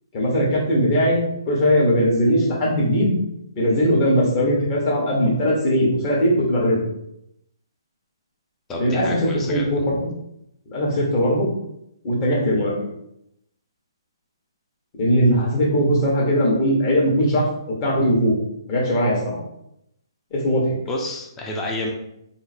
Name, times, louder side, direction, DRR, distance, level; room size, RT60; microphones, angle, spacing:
voice 1, 0.1-1.2 1.5-3.2 3.5-6.9 8.8-9.1 9.5-9.8 10.7-11.5 12.0-12.9 14.9-17.4 17.8-18.3 18.7-19.4 20.3-20.8, equal, 30° left, -4 dB, 1.4 m, -19 dB
voice 2, 8.7-9.8 20.9-21.9, left 1 dB, 15° left, -1 dB, 0.7 m, -29 dB
3.8 x 2.1 x 4.3 m, 0.80 s
hypercardioid pair, 150°, 3 cm